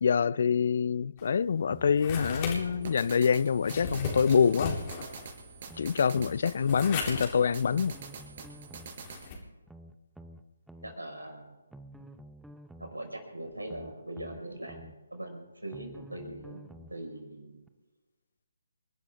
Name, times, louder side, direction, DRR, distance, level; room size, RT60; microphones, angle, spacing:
voice 1, 0.0-4.8 5.8-8.0, left 6 dB, 50° left, 0.4 m, -26 dB
sound 1, 1.2-9.4, left 4 dB, 25° left, 3.5 m, -39 dB
sound 2, 1.7-2.9 3.7-5.0 5.7-6.9 7.7-9.0 9.7-10.9 11.7-13.0 13.7-14.9 15.7-17.0 17.7-17.8, right 1 dB, ahead, 0.7 m, -50 dB
sound 3, 2.8-9.3, right 5 dB, 45° right, 4.9 m, -46 dB
voice 2, 10.8-11.4 12.9-17.6, right 1 dB, 90° right, 5.3 m, -41 dB
28.5 x 12.0 x 3.7 m
figure-of-eight pair, 145°, 0 cm